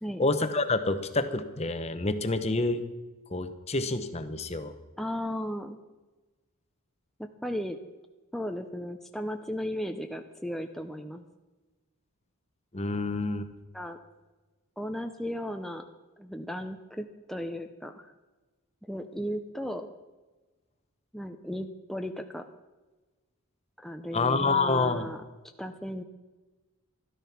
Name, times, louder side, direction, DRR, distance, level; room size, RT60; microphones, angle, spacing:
voice 1, 0.2-2.8 3.3-4.7 12.7-13.5 24.1-25.1, left 3 dB, 30° left, 9 dB, 0.9 m, -28 dB
voice 2, 5.0-5.8 7.2-7.8 8.3-11.2 13.7-14.0 14.8-15.8 16.2-18.1 18.8-19.9 21.1-22.4 23.8-25.2 25.6-26.0, equal, ahead, 5 dB, 0.6 m, -35 dB
12.5 x 12.5 x 5.9 m, 1.2 s
head